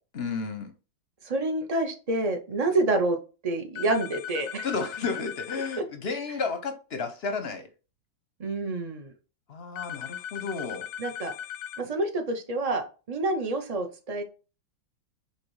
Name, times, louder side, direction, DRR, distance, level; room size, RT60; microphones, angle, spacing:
voice 1, 0.1-0.7 4.6-7.7 9.5-10.9, left 4 dB, 55° left, 0.7 m, -32 dB
voice 2, 1.3-3.2 3.4-4.7 8.4-9.1 11.0-11.3 11.8-14.2, right 2 dB, 75° right, 0.3 m, -28 dB
sound 1, 3.7-5.8 9.8-11.8, left 10 dB, 90° left, 1.3 m, -38 dB
5.9 x 4.0 x 4.7 m
omnidirectional pair, 2.1 m